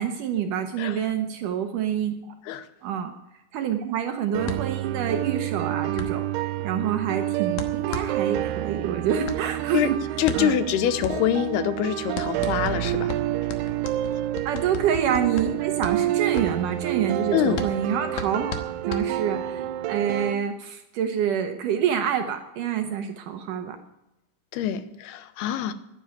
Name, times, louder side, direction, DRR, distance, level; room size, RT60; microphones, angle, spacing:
voice 1, 0.0-2.2 2.8-3.2 3.5-10.0 10.3-10.6 14.5-18.6 18.8-23.8, right 8 dB, 70° right, 2.1 m, -27 dB
sound 1, 4.3-20.3, right 13 dB, 90° right, 2.7 m, -28 dB
sound 2, 4.4-19.6, left 3 dB, 65° left, 2.3 m, -37 dB
voice 2, 10.2-13.1 17.3-17.6 24.5-25.7, left 10 dB, 85° left, 2.8 m, -25 dB
11.5 x 9.9 x 9.1 m
omnidirectional pair, 4.5 m